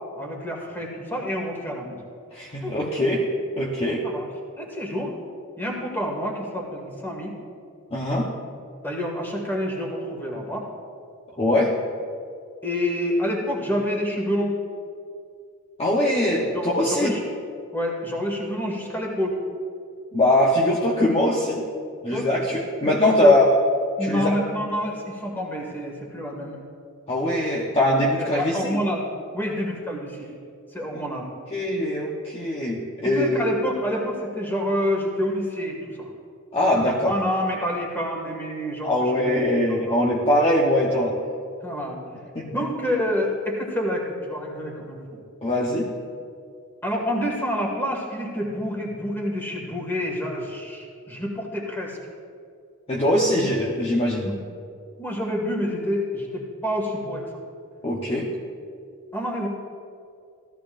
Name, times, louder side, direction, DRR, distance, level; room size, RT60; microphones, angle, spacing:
voice 1, 0.1-2.0 2.6-2.9 4.0-4.3 4.6-5.1 5.6-7.3 8.8-10.7 12.6-14.6 16.5-17.2 17.7-19.3 22.1-22.5 22.9-23.4 24.0-26.6 28.2-29.0 29.3-30.3 30.7-31.3 33.1-36.1 36.8-40.1 41.6-42.0 42.4-45.2 46.8-52.0 53.4-53.5 54.2-54.3 55.0-57.3 59.1-59.5, equal, 10° left, -1 dB, 2.0 m, -28 dB
voice 2, 2.3-3.3 3.6-4.0 7.9-8.3 11.4-11.7 15.8-17.2 20.1-21.6 22.0-23.5 24.0-24.4 27.1-28.8 30.9-31.0 31.5-33.5 36.5-37.2 38.8-41.1 42.3-42.6 45.4-45.9 52.9-54.3 57.8-58.3, left 1 dB, 25° left, -3 dB, 1.0 m, -22 dB
16.5 x 14.0 x 2.6 m, 2.3 s
head